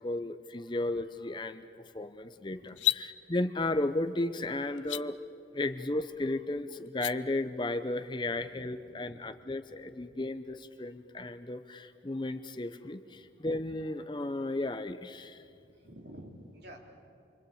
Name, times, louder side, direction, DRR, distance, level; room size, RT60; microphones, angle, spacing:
voice 1, 0.0-1.7 1.9-5.2 5.5-15.4, left 2 dB, 25° left, 9 dB, 0.7 m, -34 dB
sound 1, 2.7-3.0 4.8-5.0 6.9-7.1, left 14 dB, 80° left, 0.6 m, -29 dB
voice 2, 8.7-9.2 9.7-9.8 15.3-15.5 15.8-16.8, right 1 dB, 60° right, 0 dB, 3.6 m, -51 dB
28.5 x 23.0 x 8.6 m, 2.5 s
head